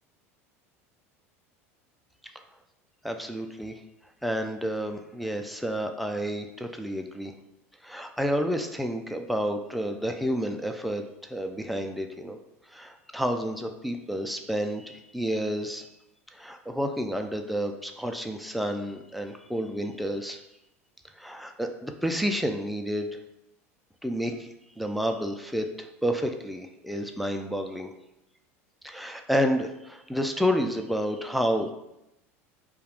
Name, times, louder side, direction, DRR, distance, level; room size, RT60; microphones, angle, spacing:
voice 1, 3.0-3.8 4.2-7.3 7.8-12.4 12.7-15.9 16.3-20.4 21.2-23.2 24.0-24.5 24.8-27.9 28.8-31.7, equal, ahead, 4 dB, 0.3 m, -30 dB
2.3 x 2.2 x 3.4 m, 0.87 s
hypercardioid pair, 85°, 8 cm